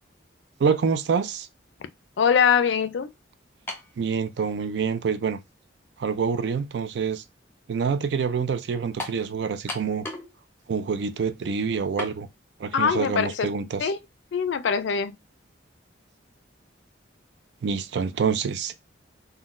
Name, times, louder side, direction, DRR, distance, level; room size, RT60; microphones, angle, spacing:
voice 1, 0.6-1.5 4.0-5.4 6.0-7.2 7.7-10.1 10.7-12.3 12.6-13.9 17.6-18.7, right 6 dB, 65° right, 0.3 m, -26 dB
voice 2, 2.2-3.1 12.7-13.5 13.8-14.0 14.3-15.2, left 7 dB, 75° left, 0.4 m, -22 dB
sound 1, 3.7-4.0 4.9-5.0 9.0-9.2 9.7-10.3 10.6-10.7 12.0-12.2, left 2 dB, 10° left, 0.5 m, -34 dB
3.7 x 2.2 x 2.4 m
head